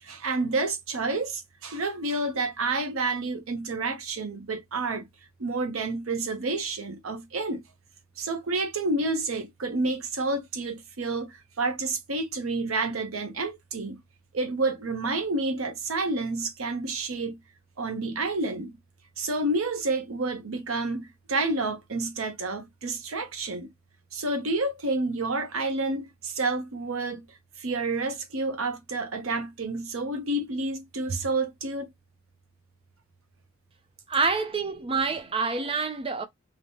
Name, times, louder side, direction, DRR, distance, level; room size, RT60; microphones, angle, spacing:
voice 1, 0.0-5.1 5.4-7.6 8.2-14.0 14.3-17.4 17.8-18.8 19.2-23.7 24.1-27.2 27.6-31.9, right 2 dB, 90° right, 0.8 m, -29 dB
voice 2, 34.1-36.2, right 4 dB, 25° right, 0.5 m, -27 dB
3.0 x 2.1 x 2.8 m
head